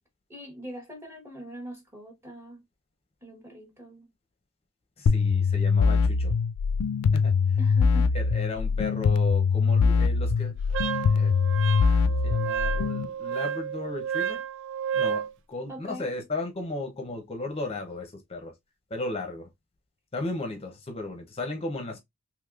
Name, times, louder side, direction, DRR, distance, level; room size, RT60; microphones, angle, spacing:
voice 1, 0.3-2.6 3.2-4.1 7.6-8.1 15.7-16.1, equal, 10° right, 0.9 m, -42 dB
voice 2, 5.0-6.3 7.1-7.3 8.1-11.4 11.6-11.7 12.1-14.4 14.9-18.5 18.9-19.5 20.1-22.0, left 2 dB, 25° left, 0.6 m, -35 dB
sound 1, 5.1-13.1, left 5 dB, 90° left, 0.4 m, -23 dB
Wind instrument woodwind instrument, 10.7-15.3, right 8 dB, 55° right, 0.3 m, -31 dB
3.4 x 2.9 x 2.4 m
head